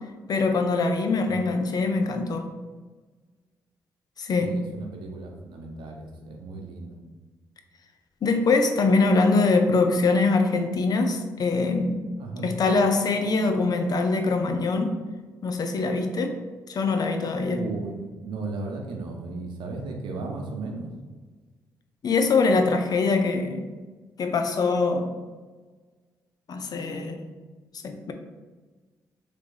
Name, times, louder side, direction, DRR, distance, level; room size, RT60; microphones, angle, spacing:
voice 1, 0.3-2.5 4.2-4.5 8.2-12.0 12.4-15.0 15.4-16.4 16.7-17.6 22.0-23.7 24.2-25.1 26.5-27.2 27.8-28.1, left 3 dB, 55° left, 6 dB, 0.6 m, -23 dB
voice 2, 4.4-7.0 12.2-12.5 17.5-20.9, right 3 dB, 75° right, 2 dB, 0.8 m, -35 dB
3.3 x 3.3 x 3.9 m, 1.3 s
supercardioid pair, 50°, 8 cm